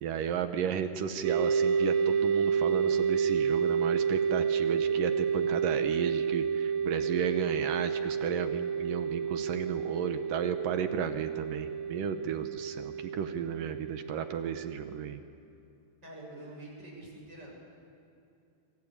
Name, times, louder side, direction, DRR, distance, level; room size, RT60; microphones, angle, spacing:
voice 1, 0.0-15.2, right 8 dB, 70° right, 8 dB, 2.1 m, -34 dB
sound 1, 1.2-15.1, right 6 dB, 90° right, 3.8 m, -30 dB
voice 2, 16.0-17.5, right 1 dB, 25° right, -2 dB, 7.7 m, -46 dB
26.5 x 24.0 x 8.7 m, 2.7 s
omnidirectional pair, 5.0 m